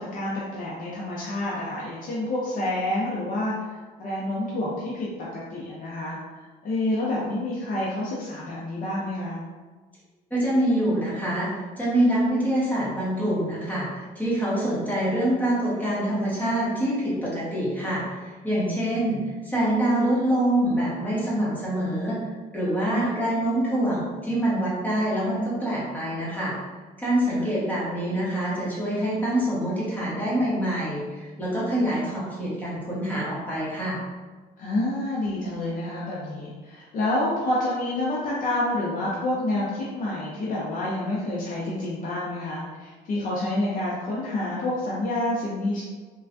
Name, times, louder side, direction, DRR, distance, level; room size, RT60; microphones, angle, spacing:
voice 1, 0.0-3.7 4.0-9.4 22.8-23.1 27.3-27.5 34.6-45.8, left 1 dB, 50° left, -6 dB, 0.6 m, -28 dB
voice 2, 10.3-11.5 11.8-22.2 22.5-26.5 27.0-34.0, right 1 dB, 10° left, -8 dB, 1.2 m, -25 dB
3.2 x 2.3 x 2.5 m, 1.3 s
cardioid pair, 110°, 17 cm